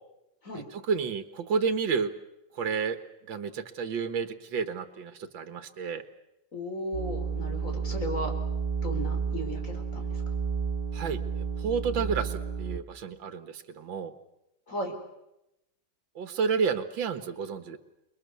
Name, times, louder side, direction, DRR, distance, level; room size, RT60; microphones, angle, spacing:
voice 1, 0.5-2.1 2.5-3.0 3.3-6.0 10.9-14.1 16.2-17.8, right 5 dB, 75° right, 10 dB, 2.1 m, -31 dB
voice 2, 6.5-8.3 8.8-10.2 14.7-14.9, equal, 40° left, 4 dB, 4.7 m, -35 dB
sound 1, 6.9-12.8, right 6 dB, 30° right, 1.8 m, -31 dB
29.0 x 22.5 x 7.0 m, 0.90 s
omnidirectional pair, 2.1 m